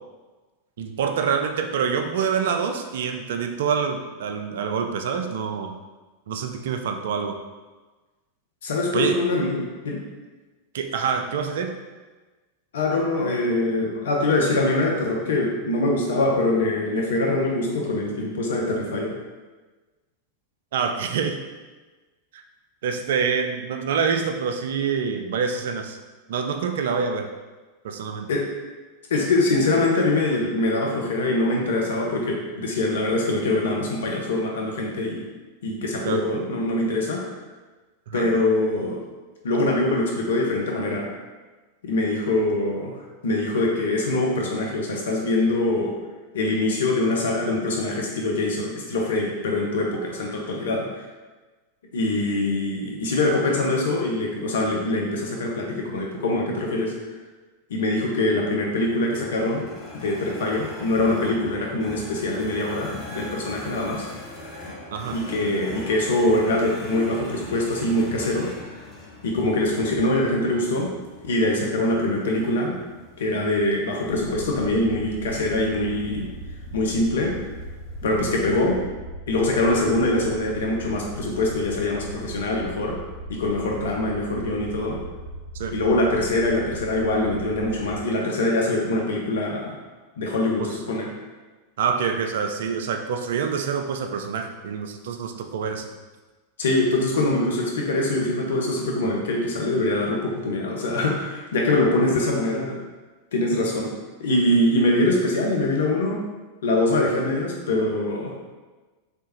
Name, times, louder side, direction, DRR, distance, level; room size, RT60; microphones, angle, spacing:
voice 1, 0.8-5.8 6.3-7.4 8.9-9.2 10.7-11.7 20.7-21.4 22.3-22.4 22.8-26.0 26.3-27.3 27.8-28.3 36.0-36.2 38.1-38.3 64.9-65.2 85.5-85.7 90.6-90.7 91.8-95.9, right 6 dB, 60° right, 5 dB, 0.3 m, -26 dB
voice 2, 8.6-10.0 12.7-19.2 28.3-28.5 29.1-35.3 35.6-37.2 38.1-39.0 39.4-41.1 41.8-42.9 43.2-45.9 46.3-50.9 51.9-56.9 57.7-59.6 59.9-64.1 65.1-68.8 69.2-70.9 71.2-72.8 73.2-76.3 76.7-77.3 78.0-78.8 79.3-83.0 83.3-85.0 85.7-89.7 90.2-91.1 96.6-102.8 103.3-103.9 104.2-106.2 106.6-108.3, left 2 dB, 65° left, -1 dB, 0.7 m, -23 dB
sound 1, 58.8-78.7, left 2 dB, 20° left, 1.1 m, -42 dB
sound 2, 74.0-88.0, right 1 dB, 30° right, 1.1 m, -38 dB
3.4 x 3.2 x 2.9 m, 1.3 s
figure-of-eight pair, 90°, 0 cm